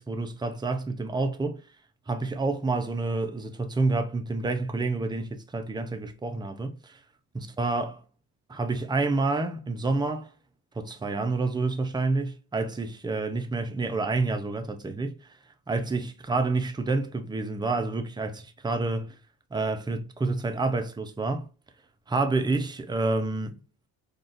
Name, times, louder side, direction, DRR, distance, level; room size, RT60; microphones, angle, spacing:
voice 1, 0.0-1.6 2.1-7.0 7.3-8.0 8.5-10.3 10.8-15.3 15.7-19.1 19.5-21.5 22.1-23.6, right 3 dB, 10° right, 0.6 m, -28 dB
3.8 x 2.4 x 2.5 m
hypercardioid pair, 65°, 45 cm